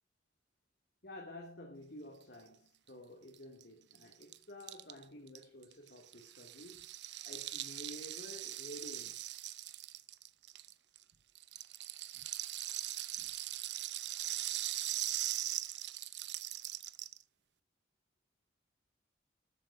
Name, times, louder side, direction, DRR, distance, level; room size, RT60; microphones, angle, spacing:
voice 1, 1.0-6.9 7.2-9.3 15.5-15.6, left 1 dB, 60° left, 3.3 m, -51 dB
Rattle (instrument), 3.3-3.4 3.6-3.7 3.9-11.0 11.4-17.2, right 14 dB, 75° right, 0.8 m, -40 dB
13.5 x 8.1 x 5.0 m
head